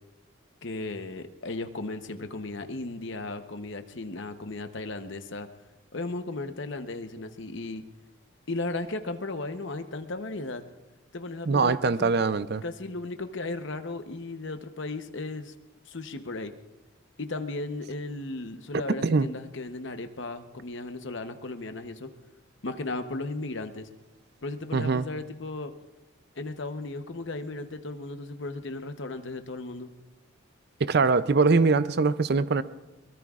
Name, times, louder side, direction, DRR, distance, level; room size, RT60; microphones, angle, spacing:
voice 1, 0.6-5.5 5.9-7.8 8.5-10.6 11.1-12.2 12.6-15.5 15.9-16.5 17.2-22.1 22.6-23.9 24.4-25.7 26.4-29.9, left 2 dB, 55° left, 0.9 m, -35 dB
voice 2, 11.5-12.6 19.0-19.3 24.7-25.0 30.8-32.6, right 4 dB, 50° right, 0.5 m, -22 dB
22.5 x 21.5 x 2.4 m
head